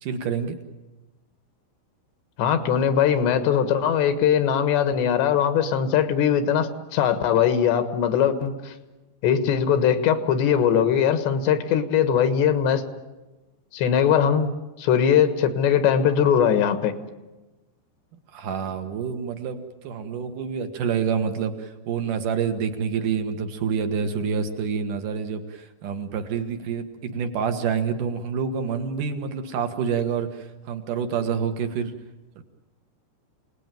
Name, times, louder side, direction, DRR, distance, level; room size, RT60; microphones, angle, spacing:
voice 1, 0.0-0.6 18.3-31.9 32.4-32.5, right 6 dB, 60° right, 7 dB, 2.6 m, -27 dB
voice 2, 2.4-8.7 9.2-12.8 13.7-14.5 14.8-16.9, left 8 dB, 80° left, 9 dB, 3.6 m, -21 dB
28.0 x 19.0 x 9.1 m, 1.1 s
omnidirectional pair, 5.0 m